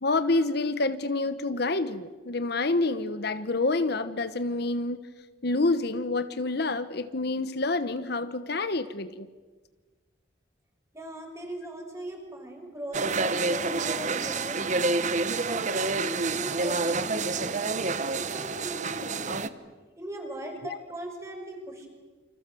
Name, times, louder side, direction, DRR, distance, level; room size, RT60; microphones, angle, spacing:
voice 1, 0.0-5.1 5.4-9.3 17.2-17.3, left 2 dB, 55° left, 12 dB, 1.0 m, -28 dB
voice 2, 10.9-14.9 15.5-17.8 18.2-19.4 20.0-21.9, right 1 dB, 15° right, 3 dB, 5.8 m, -39 dB
sound 1, 12.9-19.5, right 3 dB, 40° right, 1.1 m, -28 dB
28.5 x 26.0 x 7.8 m, 1.4 s
head